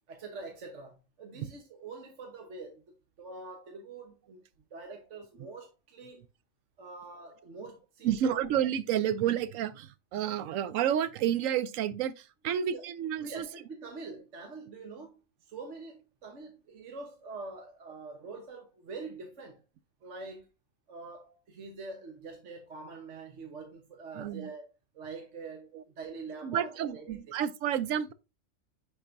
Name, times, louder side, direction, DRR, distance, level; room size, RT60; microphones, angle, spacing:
voice 1, 0.1-2.8 3.2-4.4 4.7-6.2 6.8-8.1 12.5-12.9 13.2-19.6 20.0-20.5 20.9-24.7 24.9-27.4, right 3 dB, 65° right, 1.4 m, -45 dB
voice 2, 8.0-13.5 24.1-24.5 25.7-25.8 26.4-28.1, right 10 dB, 90° right, 1.0 m, -30 dB
10.0 x 4.6 x 2.6 m
omnidirectional pair, 1.3 m